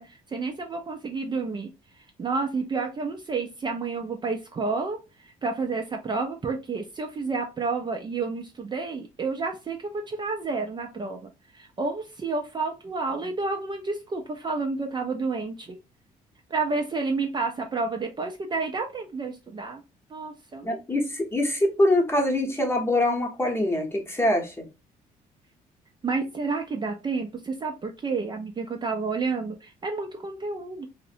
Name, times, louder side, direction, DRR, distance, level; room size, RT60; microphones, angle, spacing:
voice 1, 0.0-1.7 2.0-5.0 5.2-15.8 16.5-19.8 20.1-20.7 26.0-30.9, right 4 dB, 30° right, 0.5 m, -30 dB
voice 2, 20.6-24.7, left 1 dB, 15° left, 0.9 m, -24 dB
2.6 x 2.1 x 2.5 m
cardioid pair, 85°, 16 cm